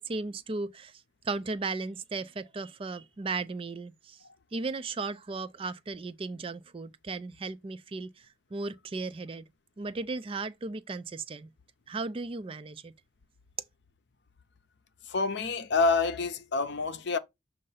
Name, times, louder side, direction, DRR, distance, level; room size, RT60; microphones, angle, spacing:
voice 1, 0.0-4.2 4.5-9.5 9.8-11.5 11.9-12.9, right 3 dB, 25° right, 0.4 m, -36 dB
voice 2, 15.0-17.2, left 4 dB, 60° left, 0.6 m, -27 dB
6.5 x 2.6 x 5.6 m
head